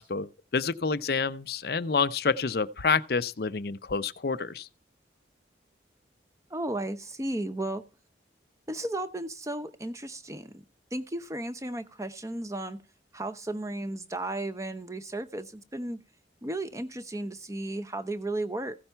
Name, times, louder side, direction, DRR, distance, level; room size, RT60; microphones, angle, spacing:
voice 1, 0.0-4.7, left 5 dB, 55° left, 0.6 m, -28 dB
voice 2, 6.5-7.8 8.7-10.6 10.9-12.8 13.1-16.0 16.4-18.7, right 1 dB, 15° right, 0.7 m, -34 dB
15.5 x 5.6 x 4.5 m
head